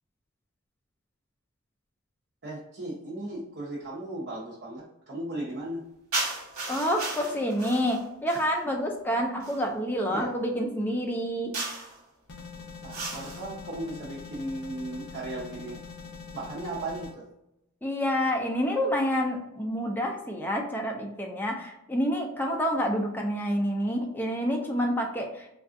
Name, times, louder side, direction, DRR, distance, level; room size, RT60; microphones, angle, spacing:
voice 1, 2.4-5.9 10.1-10.4 12.8-15.8 16.3-17.2, right 1 dB, 50° right, -6 dB, 0.8 m, -36 dB
sound 1, 6.1-8.6 9.4-9.7 11.5-12.0 12.9-13.5, right 2 dB, 70° right, 1.2 m, -35 dB
voice 2, 6.7-11.5 17.8-25.5, equal, 10° left, 0 dB, 0.3 m, -28 dB
sound 2, 12.3-17.1, left 5 dB, 55° left, 0.6 m, -43 dB
3.4 x 2.3 x 2.5 m, 0.84 s
head